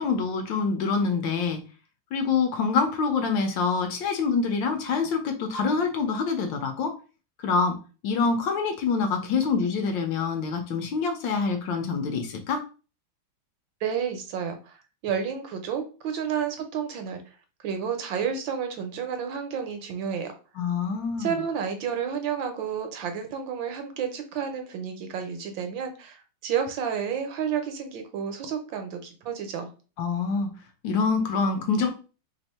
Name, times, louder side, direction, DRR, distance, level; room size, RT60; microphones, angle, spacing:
voice 1, 0.0-1.6 2.1-6.9 7.4-7.8 8.0-12.6 20.6-21.4 30.0-30.5 30.8-31.9, left 5 dB, 70° left, 5 dB, 1.3 m, -26 dB
voice 2, 13.8-14.8 15.0-17.4 17.6-20.4 21.2-29.7, right 7 dB, 70° right, 6 dB, 1.3 m, -31 dB
3.4 x 2.5 x 4.2 m, 0.34 s
omnidirectional pair, 2.3 m